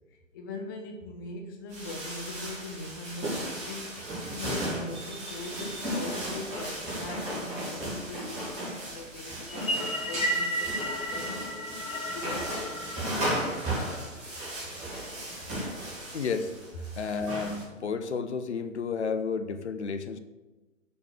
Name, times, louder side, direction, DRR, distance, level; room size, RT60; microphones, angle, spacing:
voice 1, 0.3-4.0 4.3-11.4 12.1-14.3, left 2 dB, 15° left, 3 dB, 0.5 m, -41 dB
sound 1, 1.7-17.6, right 1 dB, 15° right, 2.4 m, -35 dB
sound 2, 9.5-14.0, equal, 90° left, 1.0 m, -33 dB
voice 2, 16.1-16.5 17.0-20.2, left 5 dB, 55° left, 9 dB, 0.8 m, -31 dB
7.0 x 7.0 x 6.4 m, 1.2 s
figure-of-eight pair, 125°, 40 cm